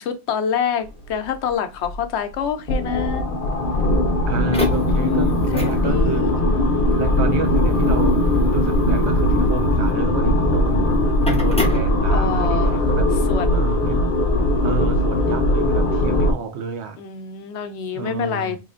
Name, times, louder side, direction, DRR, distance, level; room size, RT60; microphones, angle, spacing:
voice 1, 0.0-3.3 4.9-6.3 12.1-12.9 13.3-13.5 17.0-18.6, left 8 dB, 90° left, 0.9 m, -26 dB
sound 1, 1.5-1.6 1.8-2.0 2.4-16.3, left 1 dB, 60° left, 0.8 m, -19 dB
sound 2, 4.3-12.6, left 2 dB, 10° left, 0.4 m, -30 dB
voice 2, 4.3-6.5 7.0-11.0 11.3-14.1 14.6-17.0 17.9-18.6, right 5 dB, 80° right, 0.9 m, -30 dB
3.5 x 3.1 x 2.4 m
omnidirectional pair, 1.1 m